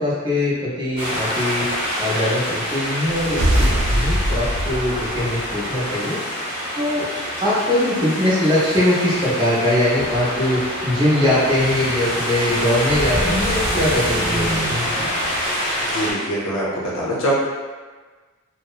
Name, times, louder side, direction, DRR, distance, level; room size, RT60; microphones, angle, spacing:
voice 1, 0.0-7.1 7.4-15.1, left 1 dB, 20° right, -8 dB, 0.6 m, -22 dB
sound 1, 1.0-16.1, equal, 40° right, 1.0 m, -25 dB
sound 2, 3.1-5.8, equal, 65° right, 0.4 m, -22 dB
voice 2, 15.8-17.3, right 1 dB, 70° left, -5 dB, 0.6 m, -24 dB
2.8 x 2.0 x 2.3 m, 1.4 s
head